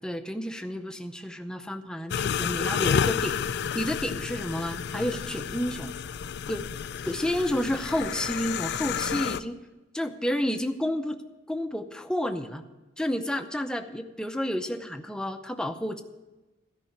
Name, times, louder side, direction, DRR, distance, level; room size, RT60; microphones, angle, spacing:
voice 1, 0.0-3.4 3.7-5.9 6.5-6.6 7.0-9.6 9.9-11.2 11.5-12.6 13.0-16.0, equal, 5° left, 6 dB, 0.6 m, -30 dB
sound 1, 2.1-9.4, left 7 dB, 55° left, 0.4 m, -30 dB
13.0 x 5.4 x 9.4 m, 1.1 s
head